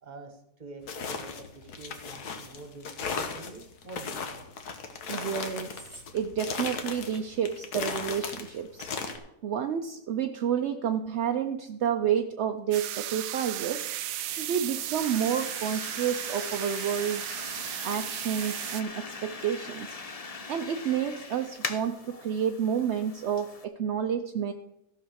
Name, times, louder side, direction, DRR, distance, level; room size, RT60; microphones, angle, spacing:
voice 1, 0.0-4.5, right 3 dB, 30° right, 7 dB, 1.3 m, -46 dB
sound 1, 0.8-9.2, left 5 dB, 75° left, 1.7 m, -36 dB
voice 2, 5.1-5.8 6.1-8.9 9.4-14.1 14.4-17.2 17.8-20.0 20.5-24.5, right 8 dB, 60° right, 6 dB, 0.7 m, -30 dB
sound 2, 12.7-18.8, right 13 dB, 85° right, 1.2 m, -35 dB
sound 3, 13.6-23.6, left 4 dB, 30° left, 0.7 m, -41 dB
15.0 x 5.8 x 6.3 m, 0.82 s
omnidirectional pair, 1.7 m